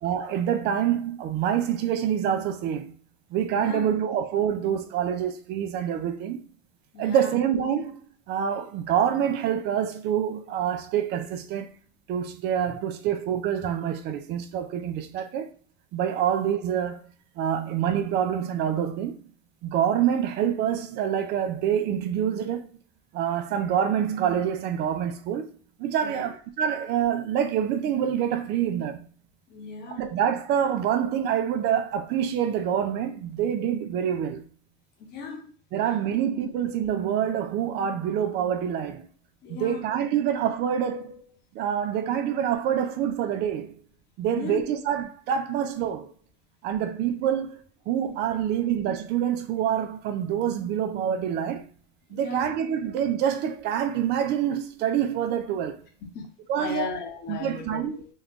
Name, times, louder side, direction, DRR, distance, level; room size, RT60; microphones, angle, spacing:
voice 1, 0.0-2.9 3.3-6.5 7.0-11.8 12.1-15.5 15.9-19.2 19.6-22.8 23.1-29.1 29.9-34.4 35.7-39.0 39.5-41.2 41.5-43.7 44.2-46.1 46.6-47.6 47.9-51.6 52.1-55.8 56.5-56.9 57.3-58.0, right 9 dB, 60° right, 0.5 m, -26 dB
voice 2, 3.5-3.9 6.9-7.4 26.0-26.3 29.5-30.0 35.0-35.5 36.1-36.2 39.4-39.9 44.3-44.6 52.1-52.5 56.1-56.3 56.5-58.1, left 4 dB, 55° left, 1.1 m, -36 dB
3.1 x 2.4 x 3.6 m
supercardioid pair, 95°, 20 cm